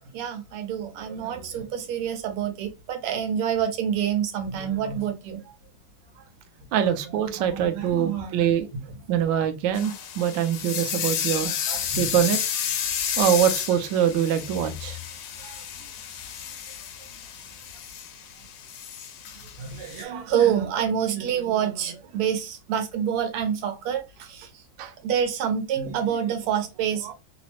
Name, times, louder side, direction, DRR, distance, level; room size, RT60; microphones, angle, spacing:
voice 1, 0.1-5.5 6.2-6.3 6.8-6.9 7.3-8.5 8.9-9.0 11.4-12.1 12.6-13.2 15.4-15.6 19.6-24.5 25.0-27.1, right 8 dB, 85° right, 1.7 m, -28 dB
voice 2, 6.7-8.7 9.1-11.5 11.9-12.4 13.2-15.0 24.8-24.9, right 9 dB, 70° right, 1.1 m, -24 dB
sound 1, 9.7-20.0, left 9 dB, 80° left, 1.5 m, -32 dB
3.8 x 2.0 x 2.8 m
omnidirectional pair, 2.4 m